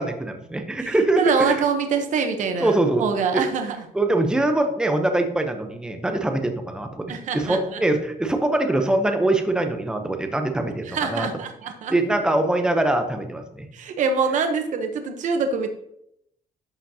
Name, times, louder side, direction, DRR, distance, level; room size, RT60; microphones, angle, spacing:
voice 1, 0.0-1.6 2.6-3.1 3.3-3.4 3.9-11.3 11.9-13.7, right 2 dB, 5° right, 5 dB, 0.7 m, -23 dB
voice 2, 0.8-3.8 7.1-7.8 10.9-11.9 13.7-15.7, right 5 dB, 55° right, 6 dB, 0.9 m, -25 dB
11.5 x 5.0 x 2.8 m, 0.76 s
cardioid pair, 150°, 15 cm